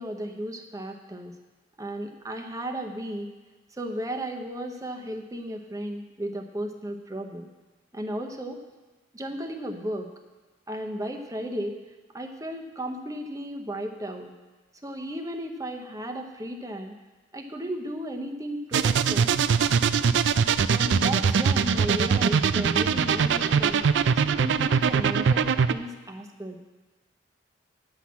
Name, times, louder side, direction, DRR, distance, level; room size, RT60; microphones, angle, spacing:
voice 1, 0.0-1.3 1.8-3.3 3.8-7.5 7.9-8.6 9.1-10.1 10.7-11.8 12.1-14.3 14.8-17.0 17.3-19.3 20.7-23.8 24.1-26.6, equal, 20° right, 3 dB, 0.8 m, -34 dB
sound 1, 18.7-25.7, right 6 dB, 70° right, 0.4 m, -22 dB
9.7 x 6.0 x 8.4 m, 1.2 s
head